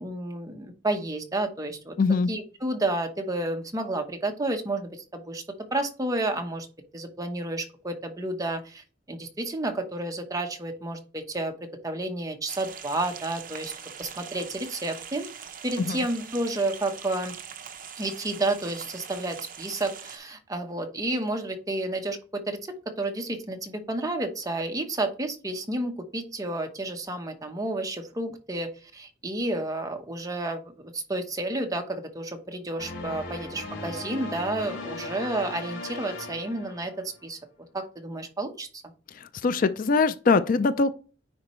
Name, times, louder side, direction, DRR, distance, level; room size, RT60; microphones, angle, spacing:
voice 1, 0.0-1.9 2.3-5.4 5.7-6.7 6.9-11.5 11.8-13.7 14.0-15.3 15.6-17.3 18.0-37.4 37.7-38.8, right 2 dB, 20° right, 1.0 m, -31 dB
voice 2, 2.0-2.3 15.8-16.0 39.1-40.9, left 4 dB, 45° left, 0.4 m, -23 dB
sound 1, 12.5-20.2, right 7 dB, 45° right, 0.8 m, -42 dB
sound 2, 32.8-37.3, left 2 dB, 70° left, 3.2 m, -38 dB
9.7 x 4.3 x 3.1 m
head